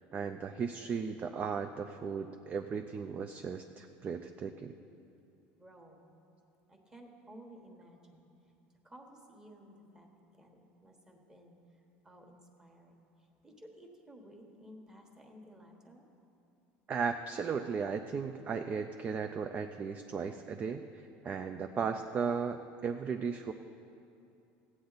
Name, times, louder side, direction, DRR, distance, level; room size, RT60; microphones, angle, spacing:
voice 1, 0.0-4.8 16.9-23.5, right 5 dB, 25° right, 6 dB, 0.4 m, -36 dB
voice 2, 5.6-6.2 6.7-8.3 8.8-10.1 10.3-11.6 12.0-16.1, equal, 10° right, 2 dB, 1.2 m, -55 dB
15.5 x 8.6 x 4.0 m, 2.8 s
cardioid pair, 135°, 5 cm